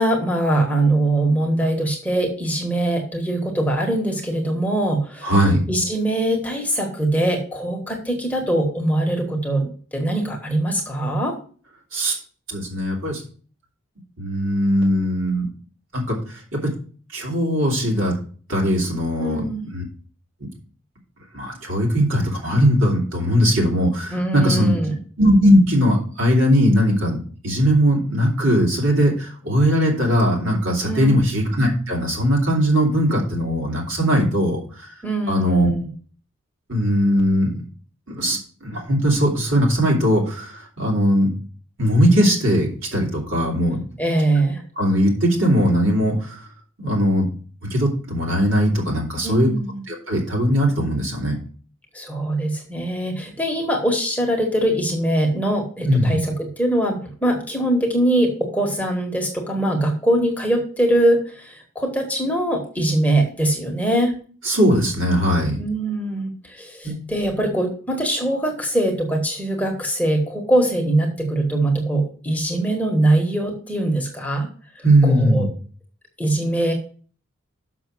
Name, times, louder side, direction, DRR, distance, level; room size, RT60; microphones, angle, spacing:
voice 1, 0.0-11.3 19.2-19.7 24.1-25.0 30.8-31.2 35.0-35.9 44.0-44.6 49.2-49.8 51.9-64.1 65.6-74.5 75.0-75.5 76.2-76.7, right 1 dB, 5° left, 1 dB, 1.4 m, -22 dB
voice 2, 5.2-5.6 11.9-12.1 12.5-13.2 14.2-15.5 15.9-16.2 17.1-18.1 18.5-19.4 19.7-19.8 21.3-24.7 25.2-27.2 27.4-29.1 29.4-34.6 35.3-35.7 36.7-37.5 38.1-40.5 40.8-41.3 41.8-43.8 44.8-46.1 46.8-47.3 47.7-49.5 49.9-51.3 55.9-56.2 64.5-65.5 66.8-67.0 74.8-75.5, equal, 65° right, -1 dB, 3.0 m, -19 dB
6.5 x 6.0 x 6.1 m, 0.43 s
head